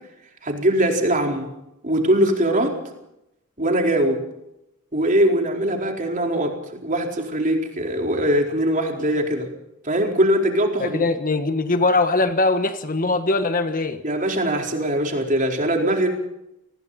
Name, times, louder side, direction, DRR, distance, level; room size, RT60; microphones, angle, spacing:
voice 1, 0.4-1.5 1.8-2.7 3.6-4.2 4.9-6.6 6.8-9.5 9.8-11.1 14.0-16.1, right 1 dB, 35° right, 2 dB, 4.4 m, -21 dB
voice 2, 10.8-14.0, left 3 dB, 40° left, 9 dB, 1.4 m, -21 dB
29.0 x 21.0 x 4.3 m, 0.86 s
head